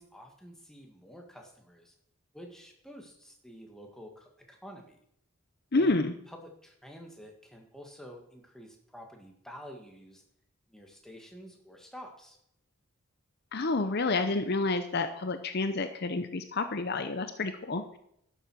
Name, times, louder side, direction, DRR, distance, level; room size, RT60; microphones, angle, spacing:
voice 1, 0.0-1.9 2.3-5.0 5.7-10.2 10.7-12.4, equal, ahead, 1 dB, 1.7 m, -49 dB
voice 2, 5.7-6.1 13.5-18.0, left 3 dB, 45° left, 9 dB, 0.7 m, -29 dB
12.0 x 7.5 x 6.2 m, 0.73 s
head